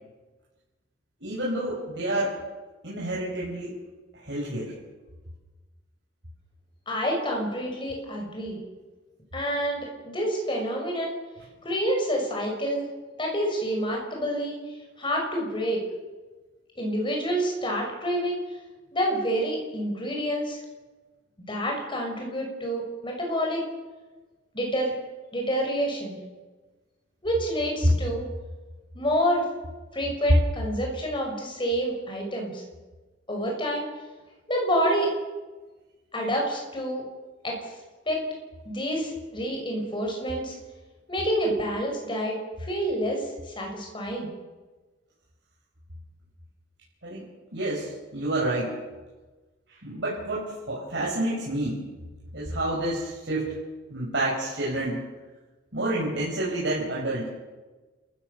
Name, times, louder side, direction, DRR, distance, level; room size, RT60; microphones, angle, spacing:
voice 1, 1.2-2.4 2.8-3.8 4.1-4.7 47.0-47.3 47.5-48.7 49.7-51.8 52.3-53.6 53.9-55.0 55.7-57.3, right 1 dB, 65° right, -5 dB, 5.1 m, -29 dB
voice 2, 6.9-8.6 9.3-11.2 11.6-12.8 13.2-14.6 15.0-15.8 16.8-18.5 18.9-20.6 21.5-23.6 24.5-24.9 25.3-26.2 27.2-28.3 28.9-29.5 29.9-32.6 33.3-33.9 34.5-35.1 36.1-37.0 37.4-37.7 38.1-38.2 38.6-40.6 41.1-42.4 42.7-44.3, equal, 25° left, 0 dB, 6.2 m, -28 dB
30.0 x 15.0 x 6.9 m, 1.3 s
head